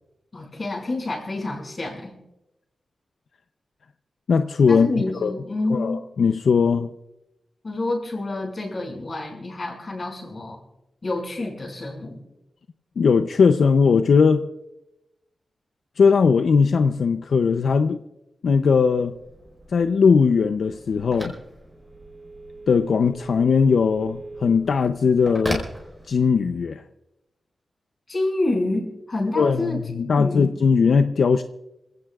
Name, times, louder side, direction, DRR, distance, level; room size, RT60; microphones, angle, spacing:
voice 1, 0.3-2.1 4.7-6.1 7.6-10.6 11.0-12.2 28.1-29.8 30.1-30.5, left 2 dB, 35° left, 0 dB, 5.8 m, -28 dB
voice 2, 4.3-4.9 5.2-5.3 5.7-6.9 13.0-14.4 16.0-18.0 18.4-19.1 19.7-21.3 22.7-25.6 26.1-26.8 29.4-31.4, left 5 dB, 75° left, 8 dB, 0.6 m, -19 dB
Telephone, 18.8-26.6, right 1 dB, ahead, 4.7 m, -38 dB
27.0 x 16.5 x 2.4 m, 0.92 s
wide cardioid pair, 150°, 0 cm